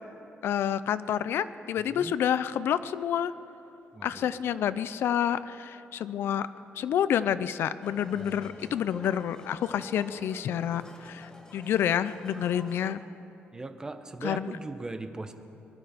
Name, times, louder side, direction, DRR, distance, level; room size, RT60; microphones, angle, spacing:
voice 1, 0.4-3.3 4.0-6.5 6.7-13.0 14.2-14.5, left 9 dB, 70° left, 14 dB, 0.5 m, -28 dB
voice 2, 1.8-2.2 3.9-4.3 8.1-8.6 13.5-15.3, right 2 dB, 15° right, 8 dB, 0.9 m, -39 dB
sound 1, 7.8-12.9, left 1 dB, 15° left, 1.3 m, -48 dB
24.0 x 11.5 x 5.1 m, 2.8 s
cardioid pair, 140°, 4 cm